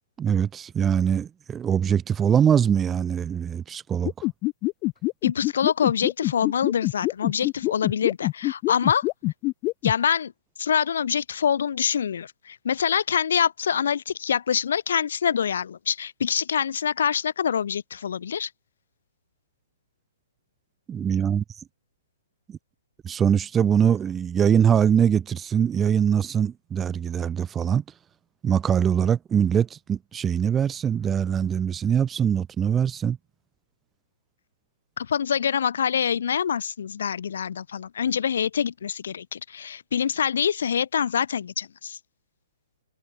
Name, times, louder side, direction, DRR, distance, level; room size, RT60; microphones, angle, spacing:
voice 1, 0.2-4.3 20.9-21.4 22.5-22.6 23.0-27.8 28.4-33.2, right 8 dB, 10° right, 4.6 m, -22 dB
sound 1, 4.0-9.9, left 22 dB, 20° left, 2.1 m, -25 dB
voice 2, 5.2-9.1 9.8-10.3 10.6-18.5 35.0-42.0, left 8 dB, 55° left, 3.1 m, -25 dB
hypercardioid pair, 175°, 0 cm